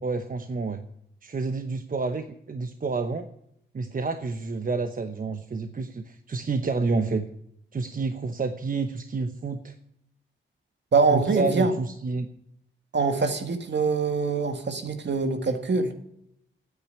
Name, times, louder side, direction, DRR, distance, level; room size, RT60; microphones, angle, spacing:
voice 1, 0.0-0.8 1.2-3.3 3.7-7.3 7.7-9.7 11.1-12.3, right 3 dB, 40° right, 8 dB, 0.9 m, -29 dB
voice 2, 10.9-11.7 12.9-15.9, right 4 dB, 60° right, 6 dB, 1.9 m, -24 dB
9.3 x 9.0 x 10.0 m, 0.75 s
cardioid pair, 80°, 21 cm